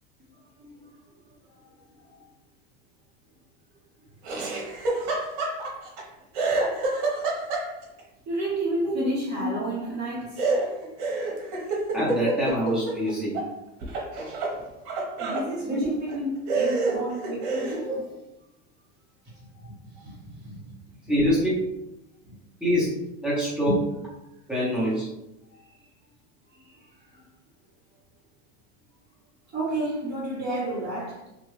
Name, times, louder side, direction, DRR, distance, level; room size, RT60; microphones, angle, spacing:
voice 1, 0.6-1.0 1.3-1.4 2.1-2.2 8.3-10.5 14.5-14.7 15.2-17.9 19.2-20.7 22.2-22.3 23.7-23.8 25.5-25.8 26.5-27.2 29.5-31.2, right 1 dB, 25° right, 1.3 m, -32 dB
Laughter, 4.2-6.0 6.3-8.0 10.4-13.5 13.8-15.5 16.1-16.2 16.5-17.8, right 2 dB, 60° right, 1.1 m, -28 dB
voice 2, 11.9-13.4 15.6-15.9 16.9-17.0 17.9-18.0 21.1-21.7 22.6-23.8 24.5-25.1, equal, 5° right, 0.9 m, -25 dB
3.0 x 2.5 x 3.1 m
supercardioid pair, 140°, 32 cm